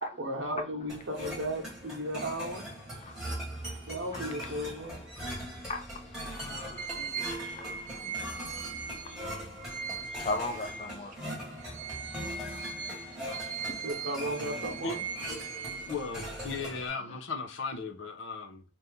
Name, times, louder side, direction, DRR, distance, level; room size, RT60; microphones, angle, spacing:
voice 1, 0.2-2.7 3.6-4.9 13.8-15.0, right 1 dB, 75° right, 0.9 m, -35 dB
sound 1, 0.9-16.9, equal, 5° right, 1.1 m, -41 dB
voice 2, 3.9-4.8 5.7-11.3 12.3-13.6 13.9-14.1 16.6-17.2, left 2 dB, 35° left, 0.4 m, -42 dB
sound 2, 6.8-11.2 11.6-16.5, right 6 dB, 40° right, 0.4 m, -40 dB
voice 3, 15.8-18.6, left 4 dB, 75° left, 0.6 m, -36 dB
2.8 x 2.5 x 3.4 m
head